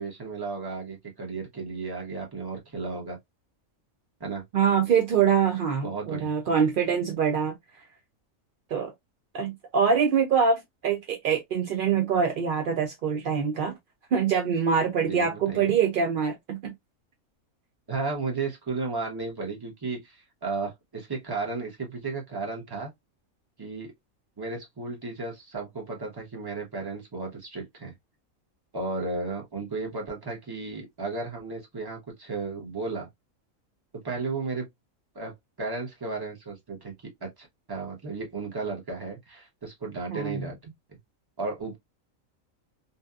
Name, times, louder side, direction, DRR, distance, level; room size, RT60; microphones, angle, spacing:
voice 1, 0.0-3.2 4.2-4.4 5.8-6.3 15.0-15.7 17.9-22.9 23.6-23.9 24.4-27.9 28.7-33.1 34.0-34.7 35.1-36.9 37.2-40.6 40.9-41.0 41.4-41.8, right 3 dB, 20° right, 0.7 m, -34 dB
voice 2, 4.5-7.8 8.7-8.9 9.3-13.7 14.1-16.7 40.1-40.4, right 6 dB, 75° right, 0.4 m, -24 dB
2.7 x 2.2 x 2.3 m
omnidirectional pair, 1.4 m